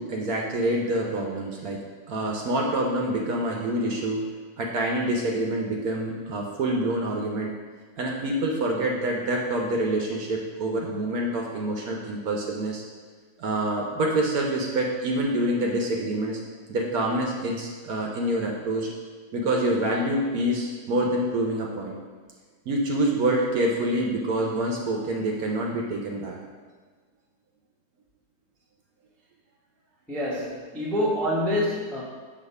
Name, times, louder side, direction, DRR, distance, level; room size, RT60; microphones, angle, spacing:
voice 1, 0.0-1.8 2.1-4.2 4.6-7.5 8.0-12.8 13.4-16.4 16.7-18.9 19.3-21.9 22.7-26.4, right 1 dB, 65° right, -1 dB, 1.0 m, -26 dB
voice 2, 30.1-32.0, left 1 dB, ahead, -6 dB, 0.5 m, -26 dB
6.3 x 2.8 x 5.3 m, 1.5 s
omnidirectional pair, 1.9 m